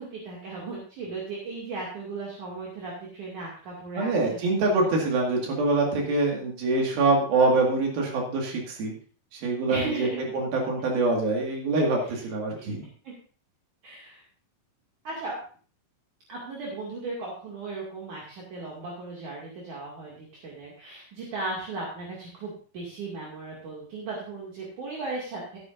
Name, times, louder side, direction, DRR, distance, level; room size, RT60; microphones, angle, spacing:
voice 1, 0.0-4.4 9.7-10.2 12.6-12.7 13.0-13.1 13.8-14.2 15.1-15.4 16.3-25.6, right 3 dB, 60° right, -3 dB, 3.6 m, -36 dB
voice 2, 4.0-8.9 9.3-12.9, right 3 dB, 80° right, 0 dB, 3.8 m, -25 dB
15.0 x 11.0 x 2.6 m, 0.41 s
omnidirectional pair, 4.2 m